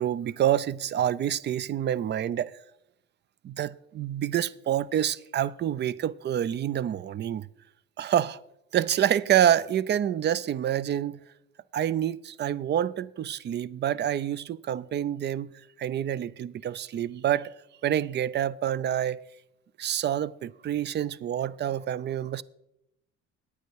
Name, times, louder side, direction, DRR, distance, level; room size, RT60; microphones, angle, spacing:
voice 1, 0.0-2.5 3.4-7.5 8.0-8.4 8.7-11.2 11.7-15.5 15.8-17.5 17.8-19.2 19.8-22.4, right 10 dB, 30° right, 0.4 m, -27 dB
9.5 x 9.0 x 4.6 m
hypercardioid pair, 70°, 35 cm